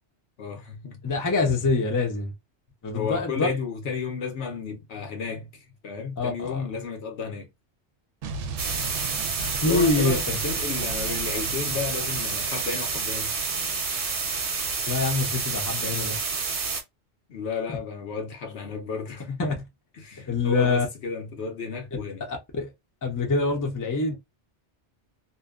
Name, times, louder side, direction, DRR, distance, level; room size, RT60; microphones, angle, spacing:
voice 1, 0.4-1.0 2.9-5.5 5.8-7.5 9.6-13.3 17.3-19.5 20.0-22.2, left 5 dB, 70° left, 1.1 m, -32 dB
voice 2, 1.0-2.3 2.8-3.5 6.2-6.7 9.6-10.4 14.9-16.2 17.7-17.8 19.4-19.5 20.3-20.9 22.3-22.7 23.0-24.1, left 3 dB, 20° left, 0.6 m, -25 dB
Explosion, 8.2-13.0, right 4 dB, 85° right, 0.9 m, -36 dB
sound 1, 8.6-16.8, right 5 dB, 55° right, 0.9 m, -29 dB
2.6 x 2.2 x 2.3 m
omnidirectional pair, 1.2 m